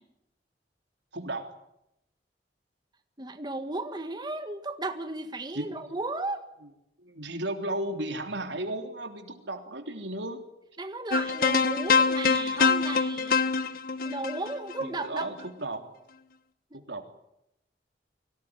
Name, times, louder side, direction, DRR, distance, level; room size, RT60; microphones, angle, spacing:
voice 1, 1.1-1.5 5.5-6.0 6.6-6.7 7.0-10.4 14.8-15.8 16.7-17.0, right 1 dB, 85° right, 5 dB, 3.4 m, -35 dB
voice 2, 3.2-6.4 10.8-13.3 14.0-15.3, right 2 dB, 25° right, 6 dB, 1.7 m, -34 dB
sound 1, 11.1-15.4, left 5 dB, 55° left, 1.4 m, -25 dB
24.5 x 17.5 x 9.8 m, 0.85 s
head